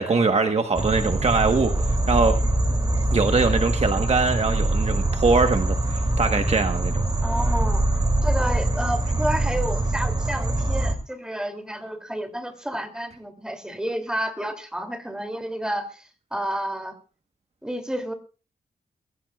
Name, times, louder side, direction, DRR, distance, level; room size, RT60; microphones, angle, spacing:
voice 1, 0.0-1.7 2.1-2.3 3.1-7.0, right 4 dB, 40° right, 5 dB, 1.2 m, -22 dB
sound 1, 0.8-10.9, right 1 dB, 25° right, 2.7 m, -23 dB
voice 2, 7.2-7.8 8.2-16.9 17.6-18.1, right 1 dB, 5° right, 6 dB, 2.7 m, -30 dB
22.5 x 15.5 x 2.4 m, 0.36 s
wide cardioid pair, 135°, 16 cm